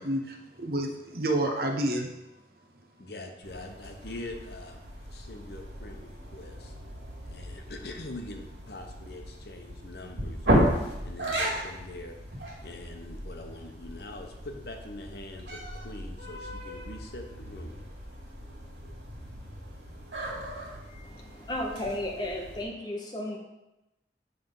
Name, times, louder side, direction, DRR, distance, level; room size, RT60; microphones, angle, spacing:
voice 1, 0.0-2.1, right 1 dB, 55° right, 3 dB, 0.8 m, -29 dB
voice 2, 3.0-4.8 5.1-6.7 7.2-10.7 11.0-12.2 12.6-17.8, left 2 dB, 65° left, 3 dB, 0.9 m, -43 dB
sound 1, 3.4-22.6, equal, 85° right, 2.1 m, -35 dB
voice 3, 21.0-23.4, left 1 dB, 25° left, -1 dB, 0.8 m, -34 dB
7.9 x 3.5 x 5.4 m, 0.95 s
head